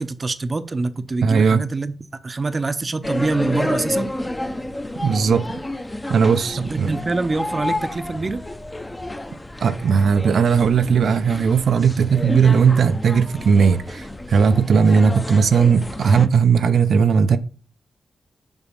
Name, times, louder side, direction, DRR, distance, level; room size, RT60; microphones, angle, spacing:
voice 1, 0.0-1.9 2.2-4.1 6.6-8.4, right 3 dB, 35° right, 0.7 m, -25 dB
voice 2, 1.2-1.6 5.0-5.5 6.1-7.0 9.6-17.4, right 6 dB, 75° right, 0.6 m, -17 dB
sound 1, 3.0-16.3, left 1 dB, 15° left, 0.8 m, -30 dB
7.1 x 5.4 x 5.3 m
wide cardioid pair, 95°, 0 cm